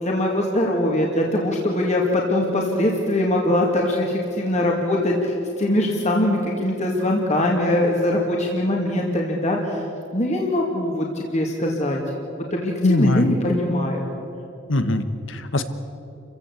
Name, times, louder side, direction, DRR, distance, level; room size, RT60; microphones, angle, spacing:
voice 1, 0.0-9.9 10.1-12.0 12.5-14.1, left 1 dB, 40° left, -1 dB, 2.6 m, -22 dB
voice 2, 12.8-13.3 14.7-15.6, left 2 dB, 80° left, 10 dB, 1.4 m, -21 dB
29.0 x 16.0 x 8.4 m, 2.8 s
head